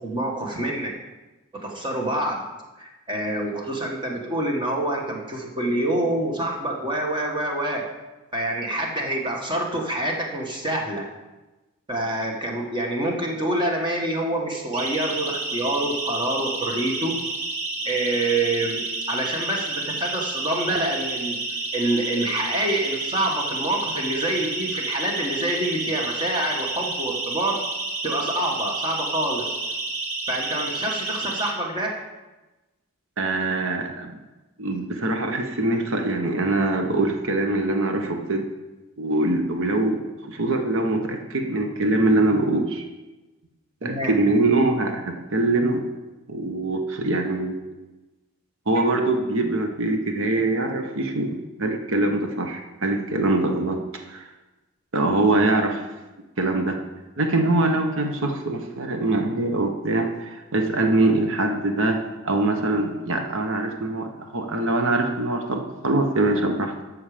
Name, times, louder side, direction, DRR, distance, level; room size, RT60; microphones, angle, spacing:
voice 1, 0.0-0.9 1.5-2.5 2.8-7.9 8.3-11.0 11.9-17.2 17.8-21.4 21.7-27.6 28.0-29.5 30.3-32.0 43.8-44.2 48.7-48.8, right 1 dB, 20° right, 0 dB, 1.5 m, -26 dB
Siren, 14.7-31.5, right 3 dB, 80° right, 1.9 m, -30 dB
voice 2, 33.2-34.2 34.6-38.4 39.0-42.9 43.8-45.8 46.3-47.6 48.7-51.3 51.6-53.8 54.1-54.2 54.9-55.8 56.4-56.8 57.2-62.0 62.2-66.8, right 2 dB, 60° right, 4 dB, 1.0 m, -23 dB
13.0 x 6.5 x 5.0 m, 1.1 s
head